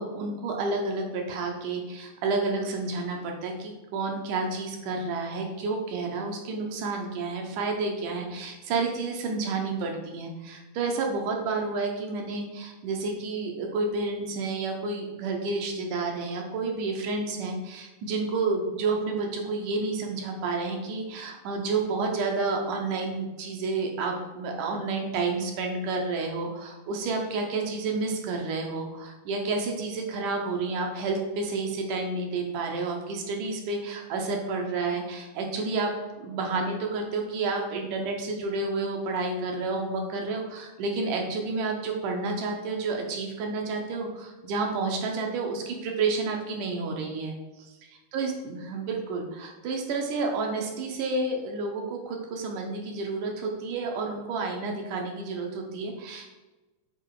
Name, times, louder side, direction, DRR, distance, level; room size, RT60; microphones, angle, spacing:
voice 1, 0.0-56.4, right 3 dB, 75° right, 2 dB, 2.2 m, -30 dB
7.0 x 4.0 x 4.6 m, 1.1 s
omnidirectional pair, 3.9 m